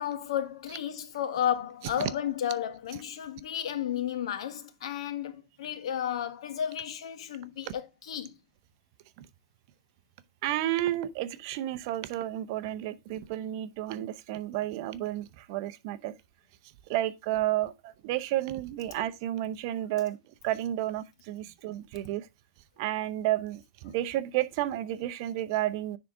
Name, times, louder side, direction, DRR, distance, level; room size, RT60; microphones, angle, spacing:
voice 1, 0.0-8.3, left 10 dB, 75° left, 1.2 m, -33 dB
voice 2, 10.4-16.1 16.9-22.3 22.8-26.0, right 14 dB, 45° right, 0.7 m, -31 dB
9.7 x 3.8 x 3.5 m
supercardioid pair, 150°, 3 cm